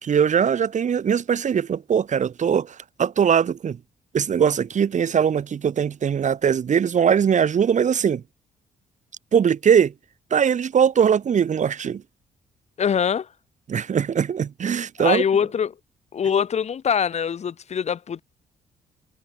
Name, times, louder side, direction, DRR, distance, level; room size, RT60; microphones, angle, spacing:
voice 1, 0.0-3.8 4.1-8.2 9.3-9.9 10.3-12.0 13.7-15.2, right 7 dB, 50° right, 1.7 m, -21 dB
voice 2, 12.8-13.3 15.0-15.7 16.1-18.2, left 7 dB, 45° left, 0.8 m, -23 dB
supercardioid pair, 55°, 15 cm